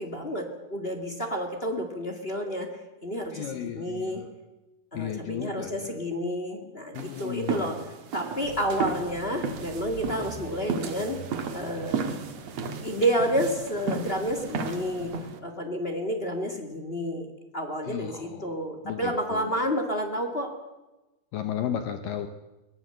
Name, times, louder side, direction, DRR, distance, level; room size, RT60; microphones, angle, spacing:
voice 1, 0.0-4.2 4.9-7.8 8.1-11.2 11.5-12.1 12.8-15.1 15.4-17.3 17.5-20.5, equal, 30° left, 4 dB, 1.0 m, -30 dB
voice 2, 3.3-4.3 4.9-5.9 6.9-7.7 17.9-18.5 18.8-19.5 21.3-22.3, left 9 dB, 70° left, 8 dB, 2.3 m, -34 dB
sound 1, 6.9-15.4, right 5 dB, 50° right, 2.4 m, -34 dB
Accelerating revving vroom, 8.4-15.3, right 5 dB, 75° right, 4.1 m, -45 dB
22.5 x 18.0 x 7.8 m, 1.1 s
omnidirectional pair, 4.6 m